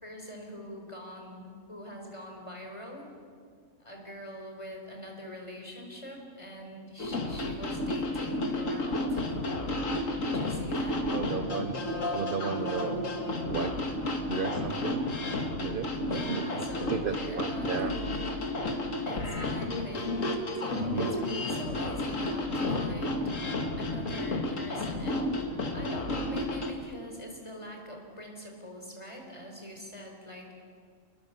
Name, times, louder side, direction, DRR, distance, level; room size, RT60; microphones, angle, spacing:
voice 1, 0.0-3.1 3.8-9.2 10.2-11.0 16.1-18.3 19.0-23.2 23.8-25.3 25.7-30.6, equal, 20° left, 1 dB, 4.5 m, -44 dB
sound 1, 7.0-26.7, left 2 dB, 75° left, 2.3 m, -32 dB
voice 2, 11.1-11.8 12.1-13.0 13.5-13.8 14.3-15.2 15.6-17.9 20.7-21.1, right 7 dB, 50° right, 9 dB, 0.8 m, -34 dB
28.0 x 21.5 x 7.0 m, 2.2 s
omnidirectional pair, 1.4 m